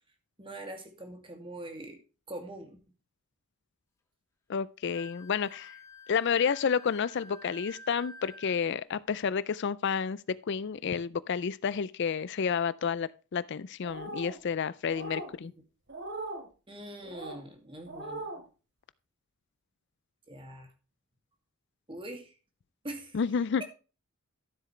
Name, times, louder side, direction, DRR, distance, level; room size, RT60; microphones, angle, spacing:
voice 1, 0.4-2.0 2.3-2.8 15.4-15.5 16.7-18.4 20.3-20.7 21.9-22.3 22.8-23.2, right 1 dB, 25° right, 2.3 m, -43 dB
voice 2, 4.5-5.8 6.1-15.5 23.1-23.6, left 6 dB, 55° left, 0.4 m, -30 dB
Wind instrument woodwind instrument, 4.9-8.6, left 2 dB, 15° left, 1.5 m, -50 dB
sound 1, 13.8-14.4 14.9-15.3 15.9-16.4 17.0-17.4 17.9-18.4, right 2 dB, 55° right, 2.8 m, -39 dB
13.0 x 7.6 x 3.2 m
head